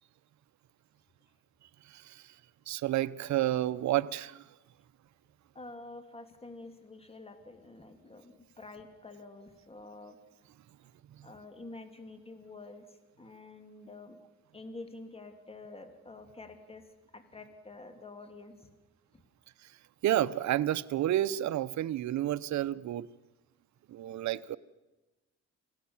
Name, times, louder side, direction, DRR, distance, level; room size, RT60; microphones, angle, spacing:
voice 1, 1.9-2.2 2.7-4.4 20.0-23.1 23.9-24.6, right 13 dB, 65° right, 0.8 m, -30 dB
voice 2, 5.5-10.2 11.2-14.2 14.5-18.7 19.1-19.2, left 2 dB, 20° left, 2.9 m, -48 dB
27.5 x 16.5 x 7.3 m
cardioid pair, 90°, 30 cm